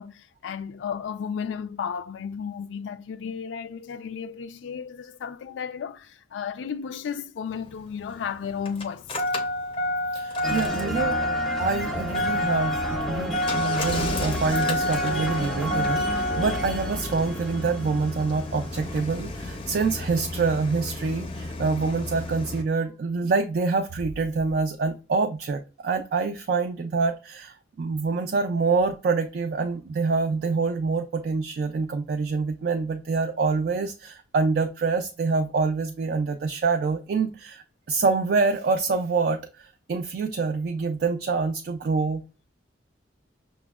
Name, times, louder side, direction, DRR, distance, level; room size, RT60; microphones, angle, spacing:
voice 1, 0.0-9.1, left 7 dB, 85° left, 0.3 m, -33 dB
Engine starting, 7.5-22.6, left 1 dB, 30° left, 0.5 m, -29 dB
voice 2, 10.1-11.2 11.6-42.2, right 4 dB, 55° right, 0.3 m, -26 dB
sound 1, 10.4-19.0, equal, ahead, 0.7 m, -33 dB
5.9 x 2.1 x 2.3 m
head